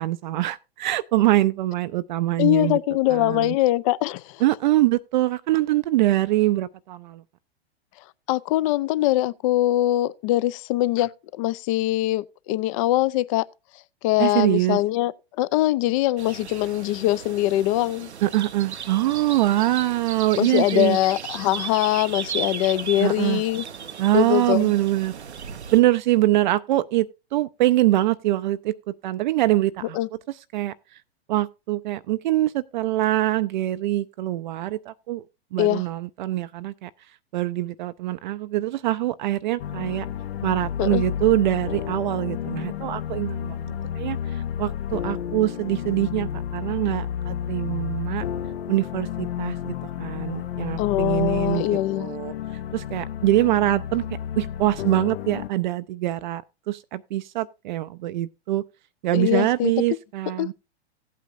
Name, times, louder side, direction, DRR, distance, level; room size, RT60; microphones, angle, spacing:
voice 1, 0.0-2.8 3.1-3.5 4.4-7.2 14.2-14.8 18.2-21.0 23.0-23.4 24.0-25.1 25.7-30.0 30.5-30.7 31.3-35.2 35.5-36.9 37.3-40.1 40.4-48.2 48.7-52.3 52.7-54.0 54.4-58.6 59.0-60.5, right 16 dB, 45° right, 0.4 m, -24 dB
voice 2, 2.4-4.4 8.3-13.5 14.0-15.1 15.4-18.1 20.4-23.6 24.1-24.7 29.9-30.1 35.6-35.8 40.8-41.0 50.8-52.1 59.1-59.7 60.4-60.5, left 15 dB, 35° left, 0.4 m, -22 dB
sound 1, 16.2-25.8, right 7 dB, 85° right, 0.7 m, -36 dB
sound 2, 39.6-55.5, left 9 dB, 65° left, 0.7 m, -31 dB
16.0 x 8.4 x 2.6 m
hypercardioid pair, 110°, 32 cm